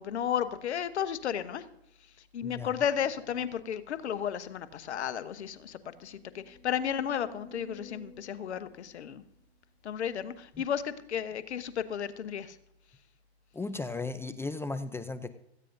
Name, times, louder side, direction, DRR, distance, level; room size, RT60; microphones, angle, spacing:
voice 1, 0.0-1.6 2.3-9.2 9.8-12.6, left 8 dB, 85° left, 12 dB, 1.0 m, -33 dB
sound 1, 4.5-4.6 5.0-5.1 5.6-9.9 10.5-10.6, left 2 dB, 35° left, 2.6 m, -55 dB
voice 2, 13.5-15.3, left 3 dB, 10° left, 11 dB, 0.5 m, -36 dB
17.5 x 14.5 x 2.6 m, 0.77 s
hypercardioid pair, 115°, 33 cm